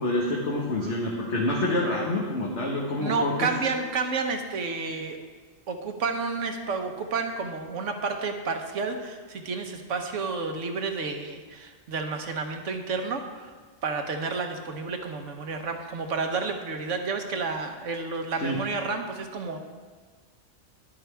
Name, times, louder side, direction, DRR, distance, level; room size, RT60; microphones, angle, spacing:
voice 1, 0.0-3.5 18.4-18.6, left 1 dB, 65° left, -4 dB, 1.6 m, -27 dB
voice 2, 3.0-5.2 5.7-13.5 13.8-19.6, right 4 dB, 80° right, 5 dB, 1.4 m, -30 dB
12.0 x 11.0 x 3.4 m, 1.5 s
omnidirectional pair, 1.3 m